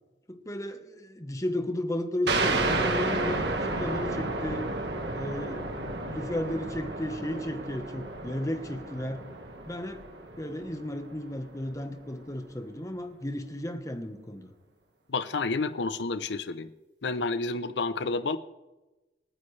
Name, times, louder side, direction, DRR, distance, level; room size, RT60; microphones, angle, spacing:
voice 1, 0.3-4.7 5.1-9.2 9.7-10.0 10.4-14.5, left 1 dB, 20° left, 7 dB, 1.1 m, -34 dB
sound 1, 2.3-11.5, right 2 dB, 80° right, 1.5 m, -32 dB
voice 2, 15.1-16.7 17.0-18.4, left 3 dB, 85° left, 13 dB, 0.7 m, -30 dB
28.0 x 9.6 x 3.3 m, 1.1 s
head